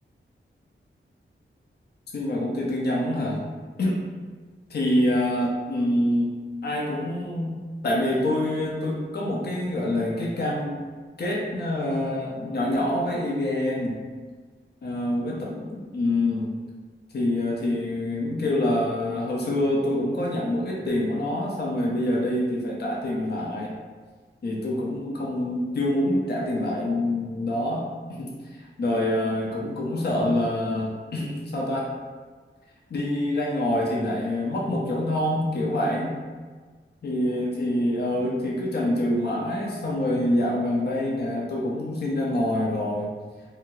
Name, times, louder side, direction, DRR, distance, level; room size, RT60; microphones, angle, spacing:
voice 1, 2.1-3.4 3.8-3.9 4.7-6.3 6.6-7.6 7.8-10.8 11.2-14.0 14.8-16.5 17.1-23.7 24.4-27.9 28.2-31.9 32.9-36.1 37.0-43.1, left 1 dB, 50° left, -4 dB, 0.5 m, -26 dB
2.6 x 2.3 x 3.0 m, 1.4 s
wide cardioid pair, 85°, 21 cm